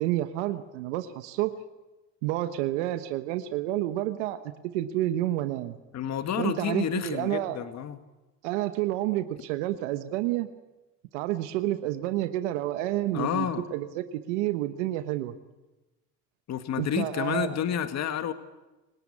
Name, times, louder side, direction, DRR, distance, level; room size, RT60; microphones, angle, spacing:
voice 1, 0.0-1.5 2.2-4.4 4.7-5.8 6.4-7.6 8.4-10.5 11.1-15.3 16.8-17.6, right 14 dB, 85° right, 10 dB, 1.2 m, -29 dB
voice 2, 5.9-8.0 13.1-13.6 16.5-18.3, left 9 dB, 50° left, 9 dB, 1.8 m, -30 dB
29.0 x 18.5 x 8.6 m, 1.1 s
supercardioid pair, 75°, 34 cm